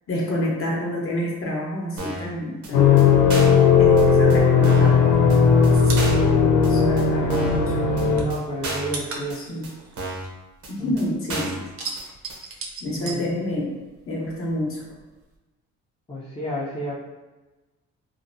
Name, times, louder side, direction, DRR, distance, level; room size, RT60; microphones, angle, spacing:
voice 1, 0.1-3.1 3.8-5.3 6.6-7.8 9.4-9.7 10.7-11.7 12.8-13.7 14.1-14.8, left 1 dB, 45° left, -3 dB, 0.9 m, -28 dB
sound 1, 2.0-2.3 2.6-2.7 3.0-3.1 3.3-3.6 4.0-4.1 4.3-4.4 4.6-5.0 5.3-5.4 5.6-5.7 6.0-6.3 6.6-6.7 7.0-7.1 7.3-7.6 8.0-8.1 8.3-8.4 8.6-9.0 9.3-9.4 9.6-9.7 10.0-10.3 10.6-10.7 11.0-11.1 11.3-11.6 12.0-12.1 12.3-12.4, right 2 dB, 75° right, 0.8 m, -31 dB
sound 2, 2.7-8.2, left 5 dB, 85° left, 0.5 m, -17 dB
sound 3, 5.0-7.5 7.8-11.1 11.4-14.0 14.2-15.3, right 4 dB, 50° right, 0.5 m, -37 dB
voice 2, 7.1-7.6 8.2-9.4 10.8-10.9 12.9-13.3 16.1-17.0, equal, 15° left, -8 dB, 0.5 m, -32 dB
2.9 x 2.0 x 2.5 m, 1.1 s
cardioid pair, 90°, 30 cm